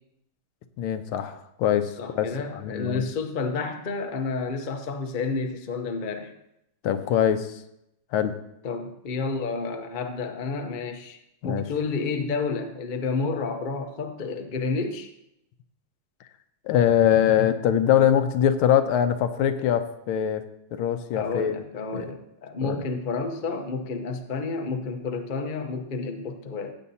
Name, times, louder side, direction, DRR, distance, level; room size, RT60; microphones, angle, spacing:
voice 1, 0.8-3.0 6.8-7.5 8.1-8.3 11.4-11.6 16.7-20.4 20.7-21.6 21.9-22.1 22.6-22.8, left 9 dB, 90° left, 9 dB, 1.6 m, -23 dB
voice 2, 2.0-6.3 8.6-15.1 21.1-26.7, left 4 dB, 70° left, 5 dB, 0.4 m, -30 dB
15.5 x 8.4 x 2.8 m, 0.80 s
omnidirectional pair, 2.3 m